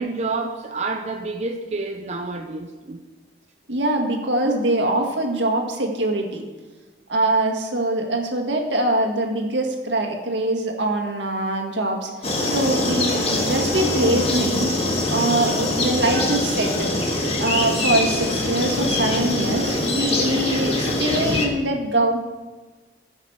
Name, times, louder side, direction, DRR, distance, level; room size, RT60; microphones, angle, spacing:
voice 1, 0.0-3.0, right 3 dB, 40° right, 5 dB, 0.6 m, -29 dB
voice 2, 3.7-6.4 7.1-14.8 15.1-16.9 17.4-22.2, right 1 dB, 85° right, 2 dB, 1.8 m, -23 dB
sound 1, 12.2-21.5, left 2 dB, 35° left, 1.6 m, -23 dB
16.0 x 6.5 x 4.9 m, 1.3 s
head